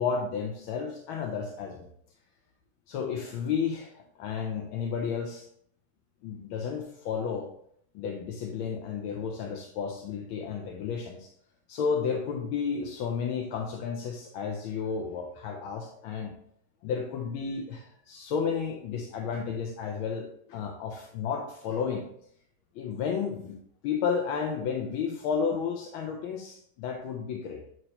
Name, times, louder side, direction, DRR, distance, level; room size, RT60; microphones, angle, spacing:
voice 1, 0.0-1.9 2.9-5.4 6.2-7.5 7.9-11.3 11.7-16.3 16.8-22.1 22.7-23.6 23.8-27.6, left 6 dB, 75° left, 1 dB, 1.5 m, -32 dB
9.0 x 3.1 x 4.2 m, 0.67 s
omnidirectional pair, 2.3 m